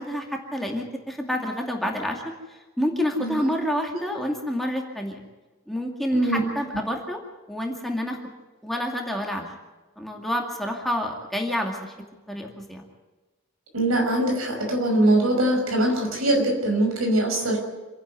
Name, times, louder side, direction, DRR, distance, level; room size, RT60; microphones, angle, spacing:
voice 1, 0.0-2.2 2.8-5.2 5.7-7.2 7.5-8.2 8.6-9.5 10.0-11.9 12.3-12.8, equal, ahead, 0 dB, 2.3 m, -28 dB
voice 2, 13.7-17.6, right 1 dB, 75° right, 2 dB, 5.9 m, -22 dB
27.5 x 11.0 x 9.2 m, 1.2 s
head